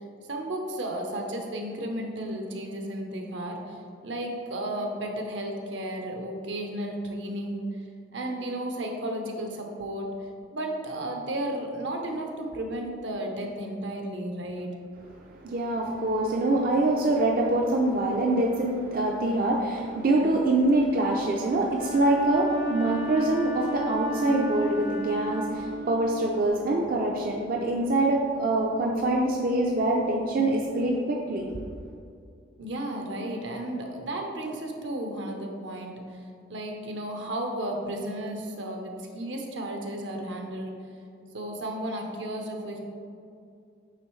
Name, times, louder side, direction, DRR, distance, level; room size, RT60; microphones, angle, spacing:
voice 1, 0.2-7.7 8.1-10.1 10.5-14.7 32.6-36.0 36.5-40.7 41.3-42.8, right 1 dB, 75° right, 2 dB, 0.8 m, -33 dB
voice 2, 15.1-31.5, right 2 dB, 50° right, -1 dB, 0.4 m, -25 dB
Wind instrument woodwind instrument, 21.7-26.4, equal, 50° left, 0.6 m, -33 dB
9.0 x 3.4 x 3.1 m, 2.4 s
head